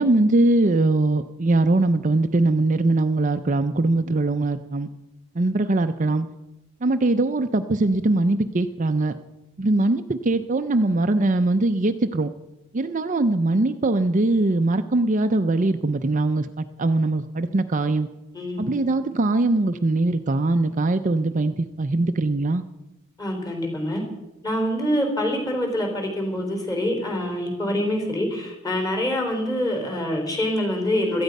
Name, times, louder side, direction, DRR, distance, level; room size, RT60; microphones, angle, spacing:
voice 1, 0.0-4.9 5.4-6.3 6.8-9.2 9.6-12.3 12.7-18.1 18.6-22.6, right 2 dB, 35° right, 8 dB, 0.6 m, -21 dB
voice 2, 18.3-18.7 23.2-24.0 24.4-31.2, left 1 dB, 15° left, 3 dB, 4.0 m, -25 dB
17.5 x 13.5 x 5.4 m, 0.97 s
head